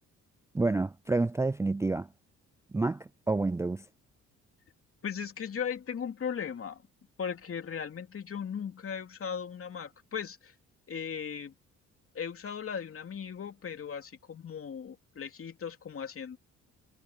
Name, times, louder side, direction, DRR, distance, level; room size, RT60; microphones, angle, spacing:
voice 1, 0.5-2.1 2.7-3.9, right 3 dB, 10° right, 0.4 m, -29 dB
voice 2, 5.0-6.8 7.2-10.5 10.9-11.5 12.1-16.4, left 7 dB, 45° left, 2.9 m, -37 dB
cardioid pair, 90°, 30 cm